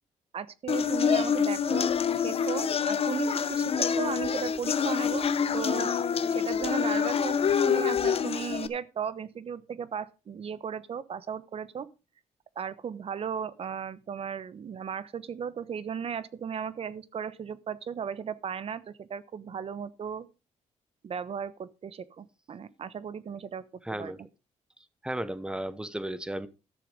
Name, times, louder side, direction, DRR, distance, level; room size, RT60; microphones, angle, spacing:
voice 1, 0.3-1.9 2.2-5.3 5.5-5.9 6.3-11.9 12.6-20.3 21.0-23.7 23.9-24.1, right 7 dB, 50° right, 1.1 m, -36 dB
sound 1, 0.7-8.7, left 7 dB, 50° left, 1.0 m, -26 dB
voice 2, 23.8-24.2 25.0-26.5, right 1 dB, 5° right, 1.0 m, -34 dB
13.5 x 6.9 x 5.2 m
cardioid pair, 90°, 12 cm